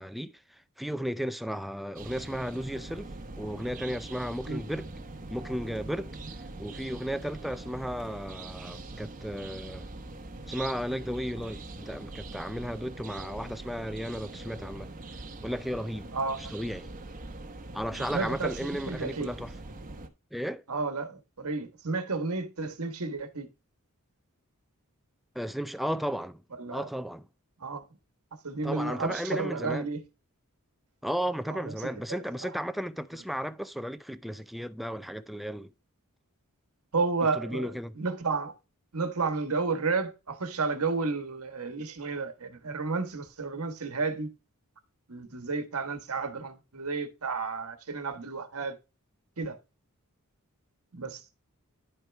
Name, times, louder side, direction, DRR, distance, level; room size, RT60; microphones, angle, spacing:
voice 1, 0.0-3.1 3.4-4.9 5.3-9.9 10.5-14.9 15.4-16.1 16.4-16.9 17.7-19.5 20.3-20.6 25.3-26.4 26.7-27.3 28.6-29.9 31.0-35.7 37.4-38.0, equal, ahead, 0.4 m, -34 dB
sound 1, 2.0-20.1, right 2 dB, 40° right, 1.0 m, -42 dB
voice 2, 16.1-16.5 18.1-19.3 20.7-23.5 26.6-26.9 27.6-27.8 28.4-30.0 31.5-31.7 32.4-32.5 36.9-38.5 38.9-44.3 45.1-48.8 49.4-49.6 50.9-51.3, right 4 dB, 75° right, 1.4 m, -32 dB
10.5 x 4.6 x 3.4 m
head